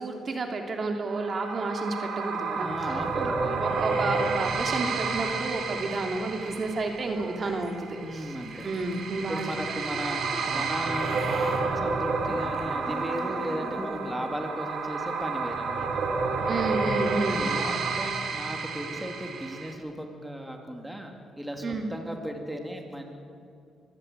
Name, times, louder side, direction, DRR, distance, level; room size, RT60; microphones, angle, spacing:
voice 1, 0.0-3.0 3.2-8.3 8.6-9.5 16.5-17.4 21.6-21.9, right 3 dB, 40° right, 3 dB, 2.8 m, -31 dB
sound 1, 1.1-19.7, right 4 dB, 65° right, 3.1 m, -30 dB
voice 2, 2.5-3.6 6.4-6.6 8.0-8.7 9.3-16.0 17.0-23.2, equal, 5° right, 3 dB, 2.9 m, -36 dB
sound 2, 3.5-11.6 11.9-15.7, right 1 dB, 25° right, 6.9 m, -42 dB
24.5 x 16.0 x 8.3 m, 2.5 s
cardioid pair, 90°, 0 cm